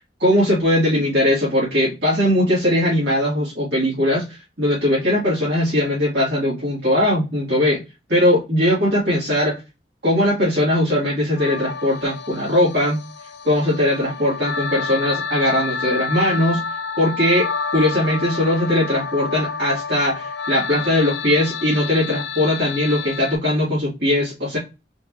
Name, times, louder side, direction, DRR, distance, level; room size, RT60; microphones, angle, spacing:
voice 1, 0.0-7.8 8.1-9.6 10.0-13.0 13.4-16.6 17.0-24.6, left 1 dB, 70° right, -8 dB, 2.3 m, -20 dB
sound 1, 11.4-23.4, left 5 dB, 75° left, 0.5 m, -29 dB
5.1 x 2.8 x 3.1 m, 0.27 s
head